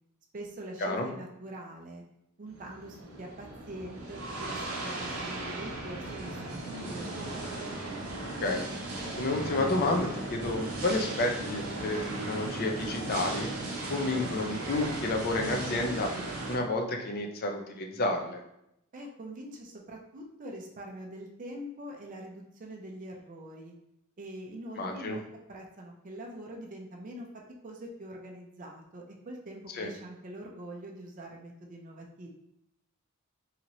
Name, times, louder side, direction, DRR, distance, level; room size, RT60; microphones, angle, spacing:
voice 1, 0.3-2.0 2.4-7.5 18.9-23.7 24.2-27.3 27.6-32.3, right 1 dB, 40° right, 0 dB, 0.4 m, -44 dB
sound 1, 2.5-16.6, right 2 dB, 85° right, 0.6 m, -37 dB
voice 2, 9.2-13.5 13.9-16.1 16.5-18.4 24.8-25.2 29.7-29.9, left 2 dB, 45° left, 3 dB, 0.5 m, -30 dB
2.9 x 2.8 x 2.6 m, 0.81 s
head